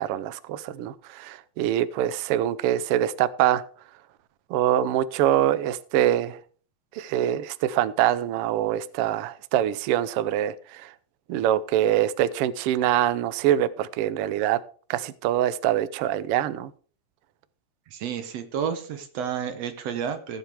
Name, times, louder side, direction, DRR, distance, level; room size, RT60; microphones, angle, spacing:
voice 1, 0.0-3.6 4.5-6.4 6.9-10.9 11.3-14.6 14.9-16.7, right 12 dB, 85° right, 1.2 m, -24 dB
voice 2, 17.9-20.4, right 7 dB, 65° right, 2.1 m, -31 dB
16.0 x 8.0 x 3.4 m
omnidirectional pair, 3.4 m